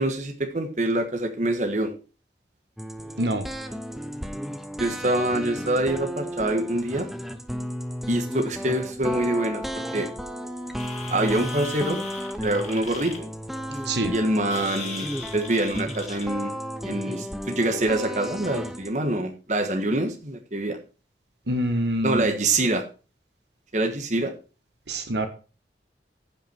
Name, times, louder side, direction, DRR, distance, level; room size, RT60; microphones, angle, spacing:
voice 1, 0.0-1.9 4.8-7.1 8.1-10.1 11.1-12.0 12.4-13.3 14.1-16.5 16.8-20.8 22.0-22.9 23.7-24.3, right 1 dB, 40° right, 5 dB, 1.4 m, -25 dB
sound 1, 2.8-18.9, equal, ahead, 0.7 m, -34 dB
sound 2, 10.7-16.4, left 5 dB, 40° left, 2.4 m, -39 dB
voice 2, 13.8-14.1 21.5-22.3 24.9-25.3, right 1 dB, 75° right, 7 dB, 1.4 m, -25 dB
15.0 x 5.8 x 4.5 m, 0.35 s
head